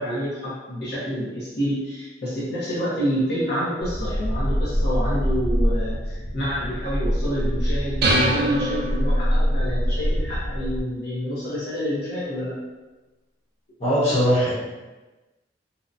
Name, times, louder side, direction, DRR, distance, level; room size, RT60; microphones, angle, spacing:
voice 1, 0.0-12.5, equal, 65° left, -9 dB, 0.7 m, -28 dB
sound 1, 3.8-10.8, equal, 5° left, 0.6 m, -24 dB
sound 2, 8.0-9.6, right 1 dB, 60° right, 0.5 m, -24 dB
voice 2, 13.8-14.5, equal, 35° left, -9 dB, 1.0 m, -20 dB
2.7 x 2.1 x 2.5 m, 1.2 s
head